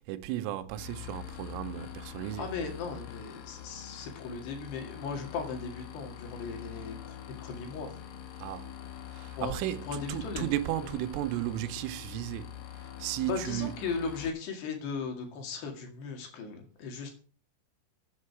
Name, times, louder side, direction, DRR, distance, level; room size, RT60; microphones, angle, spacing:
voice 1, 0.0-2.5 8.4-8.7 9.1-12.5 13.0-13.7, right 14 dB, 90° right, 3.3 m, -34 dB
sound 1, 0.8-14.3, left 11 dB, 80° left, 4.2 m, -44 dB
voice 2, 2.4-7.9 9.4-9.5 9.9-10.5 13.2-17.1, left 5 dB, 60° left, 4.0 m, -37 dB
14.0 x 8.5 x 4.7 m
omnidirectional pair, 5.7 m